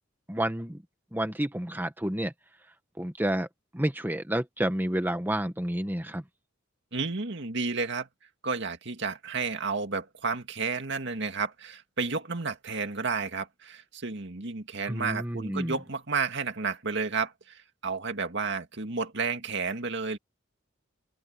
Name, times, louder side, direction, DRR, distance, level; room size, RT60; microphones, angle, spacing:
voice 1, 0.3-0.8 1.1-2.3 3.0-3.5 3.7-6.2 14.9-15.7, right 1 dB, 10° right, 1.3 m, -30 dB
voice 2, 6.9-8.1 8.4-20.2, right 4 dB, 60° right, 2.2 m, -31 dB
open air
head